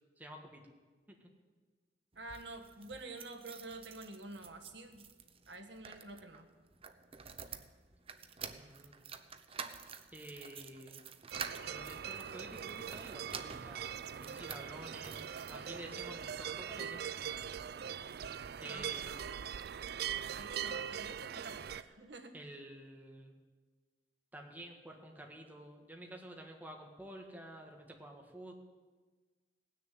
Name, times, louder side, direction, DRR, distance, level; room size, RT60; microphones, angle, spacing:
voice 1, 0.2-0.6 1.1-1.3 8.6-9.1 10.1-11.0 11.7-13.9 14.2-17.4 18.6-19.3 22.3-23.3 24.3-28.5, right 1 dB, 10° right, 1 dB, 1.6 m, -50 dB
sound 1, 2.1-16.1 16.7-17.6 17.9-18.0 18.2-18.3, right 6 dB, 35° right, 0.7 m, -50 dB
voice 2, 2.1-5.0 5.5-6.5 18.7-19.2 20.3-22.3, right 2 dB, 80° right, 5 dB, 1.6 m, -48 dB
sound 2, 11.3-21.8, right 8 dB, 60° right, 0.4 m, -42 dB
18.0 x 6.7 x 9.1 m, 1.4 s
head